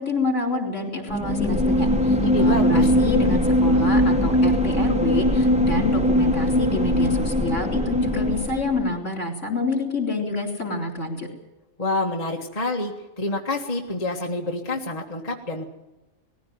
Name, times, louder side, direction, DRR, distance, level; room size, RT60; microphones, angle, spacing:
voice 1, 0.0-11.3, left 3 dB, 65° left, 2 dB, 4.2 m, -27 dB
sound 1, 1.1-8.9, equal, 5° right, 1.1 m, -21 dB
voice 2, 2.2-2.9 11.8-15.6, left 2 dB, 30° left, 1 dB, 1.8 m, -27 dB
19.5 x 15.0 x 9.4 m, 1.0 s
omnidirectional pair, 1.4 m